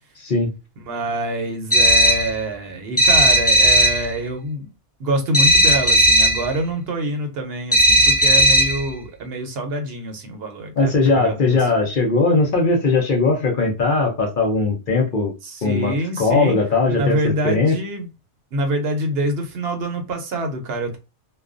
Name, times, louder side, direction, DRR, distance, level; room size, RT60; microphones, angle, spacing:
voice 1, 0.8-4.7 5.0-11.7 15.4-16.6 16.9-18.1 18.5-21.0, right 1 dB, 65° right, 0.8 m, -25 dB
sound 1, 1.7-2.3 3.0-4.1 5.3-6.5 7.7-8.8, equal, 15° left, 0.7 m, -15 dB
voice 2, 10.8-15.3 15.6-17.2 17.4-17.8, left 3 dB, 55° left, 0.7 m, -19 dB
2.4 x 2.2 x 2.4 m
omnidirectional pair, 1.2 m